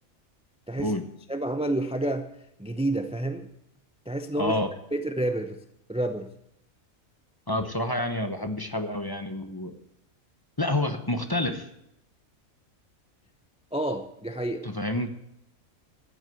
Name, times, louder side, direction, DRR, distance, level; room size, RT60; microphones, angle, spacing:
voice 1, 1.3-2.3 2.6-3.5 4.1-4.5 4.9-5.6 5.9-6.3 13.7-14.6, right 1 dB, 5° right, 8 dB, 0.5 m, -29 dB
voice 2, 4.4-4.7 7.5-9.7 10.6-11.7 14.6-15.1, left 1 dB, 20° left, 7 dB, 0.9 m, -28 dB
14.0 x 8.2 x 7.8 m, 0.79 s
omnidirectional pair, 1.4 m